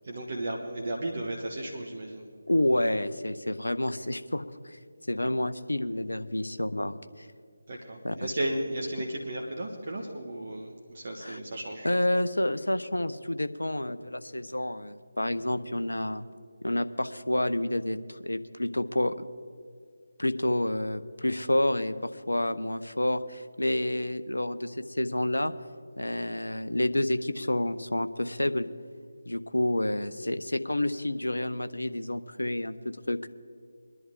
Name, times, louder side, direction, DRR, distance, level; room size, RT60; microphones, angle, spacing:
voice 1, 0.0-2.3 7.7-11.9, right 1 dB, 45° right, -1 dB, 1.4 m, -34 dB
voice 2, 2.5-4.8 5.1-7.3 8.0-8.1 11.2-11.4 11.8-16.2 16.6-19.3 20.2-25.5 26.0-28.7 29.2-32.7 33.1-33.3, left 1 dB, 75° left, 11 dB, 0.7 m, -29 dB
22.0 x 11.0 x 3.7 m, 2.3 s
figure-of-eight pair, 155°, 0 cm